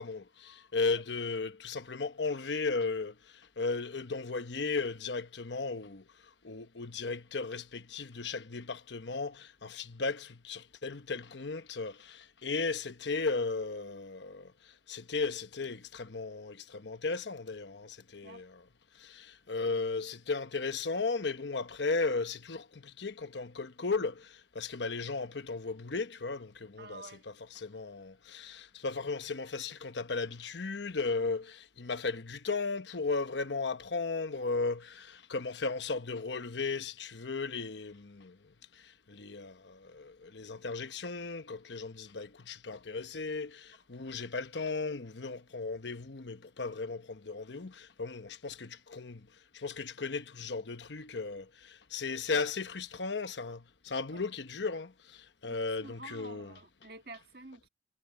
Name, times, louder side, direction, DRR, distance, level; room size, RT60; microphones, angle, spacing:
voice 1, 0.0-6.0 6.4-18.6 19.0-38.4 38.7-49.3 49.5-56.5, left 4 dB, 90° left, 1.1 m, -36 dB
voice 2, 26.8-27.2 54.1-54.2 55.4-55.5 55.8-57.7, right 2 dB, 60° right, 1.7 m, -49 dB
head